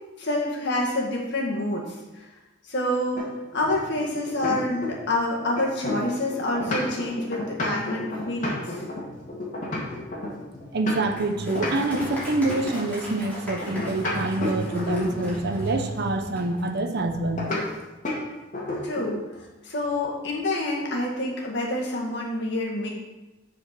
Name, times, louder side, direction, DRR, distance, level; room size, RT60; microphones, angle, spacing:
voice 1, 0.2-2.3 2.7-3.2 3.5-8.8 18.8-22.9, left 1 dB, 60° left, -2 dB, 1.9 m, -27 dB
sound 1, 3.1-5.1 5.4-11.2 11.5-12.7 13.6-15.4 17.4-17.6 18.0-18.2 18.5-19.2, left 2 dB, 40° left, 2.1 m, -31 dB
voice 2, 10.7-17.5, right 2 dB, 55° right, 6 dB, 0.8 m, -26 dB
Applause, 11.1-16.7, equal, 10° left, 3.1 m, -39 dB
7.6 x 4.9 x 6.0 m, 1.1 s
head